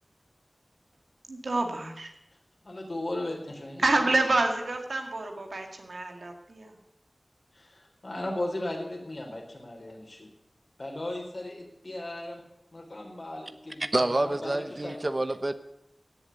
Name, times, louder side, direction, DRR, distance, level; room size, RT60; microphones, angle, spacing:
voice 1, 1.3-2.1 3.8-6.7, right 2 dB, 85° right, 4 dB, 2.2 m, -28 dB
voice 2, 2.6-3.8 7.5-10.3 10.8-12.4 12.7-14.6 14.8-15.0, left 1 dB, 60° left, 1 dB, 4.1 m, -36 dB
voice 3, 13.9-15.5, right 2 dB, 45° right, 11 dB, 0.9 m, -27 dB
17.0 x 7.4 x 7.9 m, 0.84 s
wide cardioid pair, 40°, 0 cm